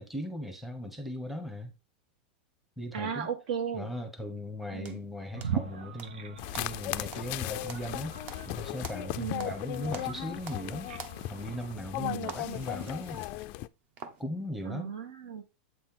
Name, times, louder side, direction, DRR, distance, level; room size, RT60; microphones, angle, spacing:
voice 1, 0.0-1.7 2.8-3.3 3.7-8.2 8.5-10.9 11.3-13.2 14.2-14.9, equal, 5° right, 1.0 m, -38 dB
voice 2, 2.9-3.9 4.7-5.0 9.2-9.5 12.0-12.7 14.7-15.4, right 7 dB, 65° right, 1.7 m, -36 dB
sound 1, 4.9-6.2 6.5-9.6 9.9-10.7 11.0-14.2, right 6 dB, 35° right, 0.9 m, -47 dB
sound 2, 5.3-11.7, right 8 dB, 85° right, 1.0 m, -41 dB
sound 3, 6.4-13.7, left 17 dB, 35° left, 0.3 m, -37 dB
8.1 x 4.3 x 3.7 m
supercardioid pair, 160°, 5 cm